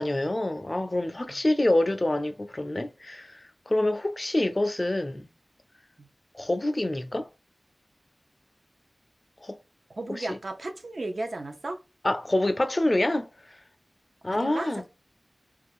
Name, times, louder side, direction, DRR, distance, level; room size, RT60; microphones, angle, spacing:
voice 1, 0.0-5.3 6.3-7.3 9.4-9.6 10.1-10.4 12.0-13.3 14.2-14.8, left 1 dB, 40° left, 0.4 m, -26 dB
voice 2, 10.0-11.8 14.3-14.9, right 2 dB, 70° right, 0.6 m, -35 dB
2.4 x 2.3 x 3.5 m
wide cardioid pair, 55°, 0 cm